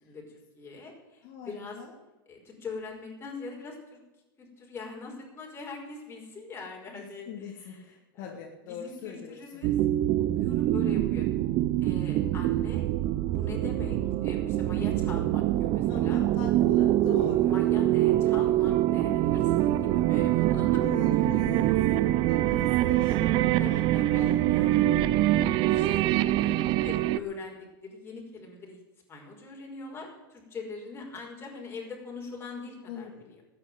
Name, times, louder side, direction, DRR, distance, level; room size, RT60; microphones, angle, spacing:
voice 1, 0.0-1.8 2.3-4.0 4.4-8.4 8.7-9.7 10.4-11.3 11.8-12.9 13.3-16.2 17.4-21.8 23.6-24.9 25.3-28.8 29.1-33.4, left 3 dB, 20° left, 0 dB, 5.4 m, -43 dB
voice 2, 1.2-1.9 6.9-9.6 15.9-17.8 20.8-21.7 22.2-24.4 32.9-33.3, left 7 dB, 50° left, 1 dB, 2.8 m, -42 dB
sound 1, 9.6-27.2, right 14 dB, 45° right, 0.7 m, -24 dB
13.5 x 9.7 x 9.2 m, 1.1 s
hypercardioid pair, 120°, 12 cm